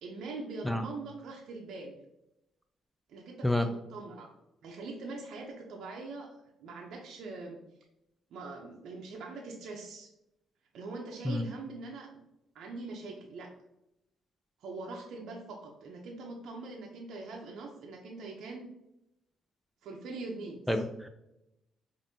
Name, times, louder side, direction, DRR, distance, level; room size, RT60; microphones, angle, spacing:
voice 1, 0.0-2.0 3.1-4.3 4.6-7.6 8.3-10.1 10.7-12.1 12.5-13.5 14.6-18.7 19.8-20.8, right 3 dB, 75° right, -1 dB, 0.6 m, -42 dB
voice 2, 20.7-21.1, left 1 dB, ahead, 6 dB, 0.4 m, -28 dB
5.1 x 2.6 x 2.7 m, 0.85 s
cardioid pair, 90°, 0 cm